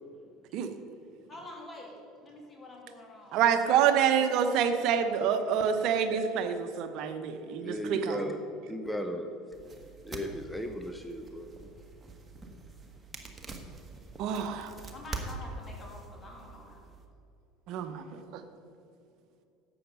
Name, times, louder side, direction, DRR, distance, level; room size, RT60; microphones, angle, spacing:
voice 1, 1.3-3.4 14.9-16.9, left 2 dB, 25° left, 0 dB, 2.5 m, -47 dB
voice 2, 3.3-8.2 14.2-14.7 17.7-18.0 18.3-18.4, right 8 dB, 55° right, 9 dB, 0.9 m, -27 dB
voice 3, 7.5-8.4 8.7-9.3 10.0-11.5, equal, 5° left, 5 dB, 0.8 m, -36 dB
sound 1, 9.5-17.1, right 3 dB, 20° right, 1.5 m, -44 dB
11.5 x 7.9 x 5.4 m, 2.7 s
figure-of-eight pair, 65°, 0 cm